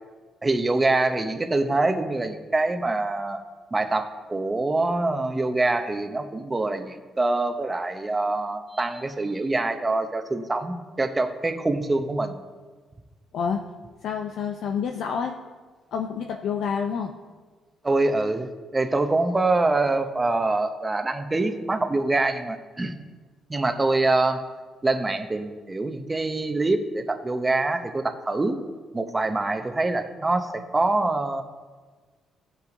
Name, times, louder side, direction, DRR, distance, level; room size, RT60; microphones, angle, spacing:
voice 1, 0.4-3.4 3.7-12.4 17.8-22.9 23.5-24.4 24.8-28.6 28.9-31.4, right 2 dB, 20° right, 7 dB, 0.9 m, -25 dB
voice 2, 14.0-15.4 15.9-17.1, left 6 dB, 75° left, 3 dB, 0.6 m, -28 dB
16.0 x 5.9 x 4.0 m, 1.4 s
cardioid pair, 90°, 0 cm